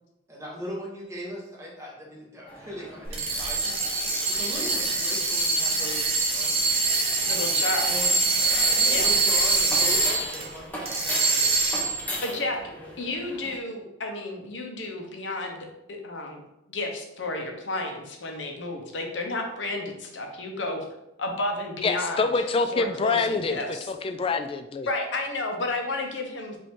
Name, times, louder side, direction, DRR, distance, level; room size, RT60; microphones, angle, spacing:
voice 1, 0.3-3.8 4.3-7.6 7.9-8.1 8.6-11.9 12.3-12.4 12.7-12.9, equal, 15° right, -4 dB, 1.3 m, -40 dB
sound 1, 2.5-13.6, equal, 10° left, 0.9 m, -40 dB
sound 2, 3.1-10.5 10.9-12.0, right 3 dB, 30° right, 1.0 m, -24 dB
voice 2, 7.3-8.0 8.9-9.1 11.8-12.6 13.0-15.7 16.0-16.4 16.7-20.8 21.2-22.3 22.7-23.9 24.9-26.6, left 2 dB, 70° left, 2 dB, 0.9 m, -32 dB
voice 3, 21.8-23.6 23.9-24.9, left 4 dB, 30° left, 8 dB, 0.3 m, -26 dB
5.2 x 2.7 x 3.6 m, 0.88 s
head